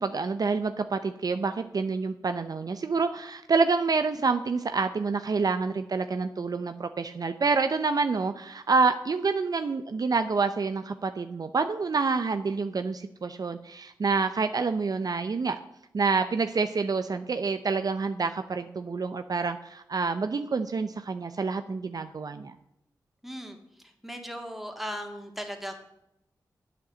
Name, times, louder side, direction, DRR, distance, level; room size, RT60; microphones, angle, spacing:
voice 1, 0.0-15.6 15.9-22.5, right 4 dB, 50° right, 9 dB, 0.6 m, -27 dB
voice 2, 23.2-23.6 24.0-25.7, equal, 5° right, 3 dB, 2.2 m, -37 dB
8.4 x 7.5 x 7.6 m, 0.86 s
cardioid pair, 55°, 8 cm